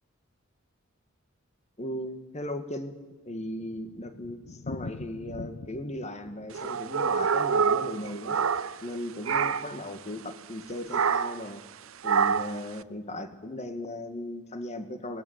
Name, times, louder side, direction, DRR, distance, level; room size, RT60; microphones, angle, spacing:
voice 1, 1.8-3.0 3.2-8.4 8.8-11.6 12.0-15.2, left 1 dB, 35° left, 10 dB, 1.6 m, -37 dB
Thunder, 3.0-9.0 9.3-9.4 9.7-9.8 10.0-10.1 10.7-11.0, left 3 dB, 65° left, 0.6 m, -44 dB
sound 1, 6.5-9.0 9.2-9.8 10.9-11.5 12.0-12.6, right 6 dB, 80° right, 0.7 m, -26 dB
21.5 x 18.0 x 7.9 m, 1.2 s
head